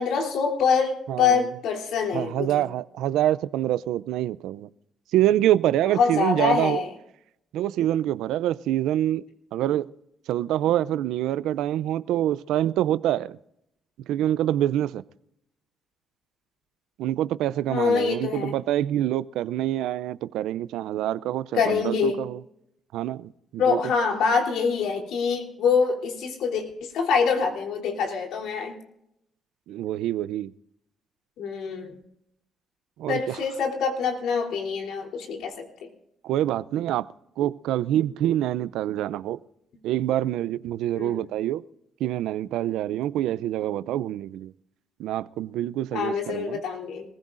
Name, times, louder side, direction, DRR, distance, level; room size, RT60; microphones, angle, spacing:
voice 1, 0.0-2.6 6.0-6.9 17.7-18.5 21.5-22.2 23.6-28.7 31.4-31.9 33.1-35.9 40.9-41.3 45.9-47.0, left 5 dB, 85° left, 3.2 m, -25 dB
voice 2, 1.1-1.4 2.1-4.7 5.1-6.8 7.5-9.2 9.5-9.9 10.3-13.4 14.1-15.0 17.0-22.4 22.9-23.8 29.7-30.5 33.0-33.4 36.2-37.1 37.4-39.4 39.8-41.6 42.0-44.5 45.0-46.6, right 12 dB, 90° right, 0.4 m, -26 dB
25.5 x 15.5 x 2.5 m
cardioid pair, 90°, 0 cm